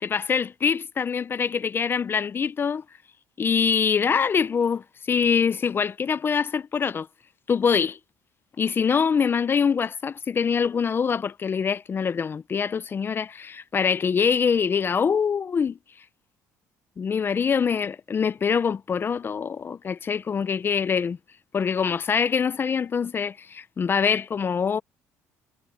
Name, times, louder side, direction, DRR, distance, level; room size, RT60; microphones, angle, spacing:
voice 1, 0.0-2.8 3.4-7.1 7.5-8.0 8.6-15.8 17.0-21.2 21.5-24.8, left 6 dB, 35° left, 0.6 m, -24 dB
cardioid pair, 95°, 7 cm